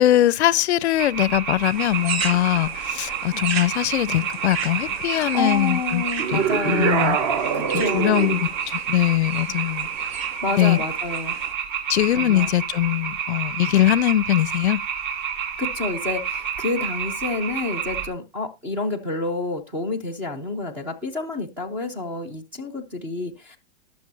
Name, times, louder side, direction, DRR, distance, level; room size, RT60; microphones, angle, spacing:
voice 1, 0.0-6.0 6.3-6.4 6.6-7.2 7.7-9.9 10.6-10.8 11.9-14.8, left 13 dB, 80° left, 0.6 m, -21 dB
sound 1, 1.0-18.1, right 8 dB, 50° right, 3.1 m, -29 dB
sound 2, 1.6-11.5, right 6 dB, 70° right, 2.7 m, -36 dB
voice 2, 5.1-7.0 7.5-8.4 10.4-11.4 12.1-12.5 15.6-23.6, left 3 dB, 5° right, 0.5 m, -29 dB
sound 3, 6.2-8.5, right 7 dB, 30° right, 0.9 m, -24 dB
19.5 x 6.8 x 2.6 m
supercardioid pair, 175°, 33 cm